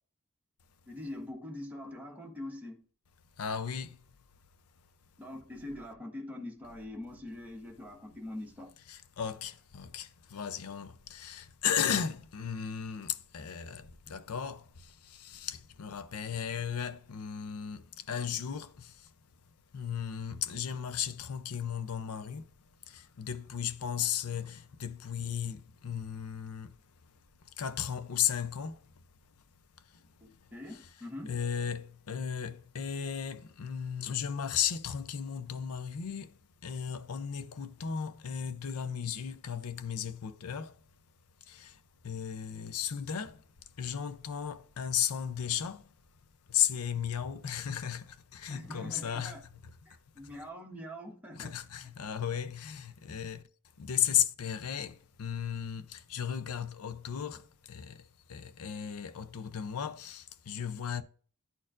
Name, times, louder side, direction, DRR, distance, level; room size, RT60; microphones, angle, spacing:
voice 1, 0.9-2.8 5.2-8.7 30.2-31.3 48.5-49.4 49.8-51.5, left 1 dB, 5° right, 1.3 m, -43 dB
voice 2, 3.4-4.0 8.9-14.6 15.0-18.9 19.7-22.4 22.9-26.7 27.6-28.8 31.3-36.3 36.6-40.7 41.5-41.7 42.0-43.4 43.8-45.8 46.5-49.4 51.4-53.4 53.8-58.0 58.3-61.0, left 8 dB, 80° left, 0.5 m, -35 dB
11.0 x 4.3 x 2.4 m
head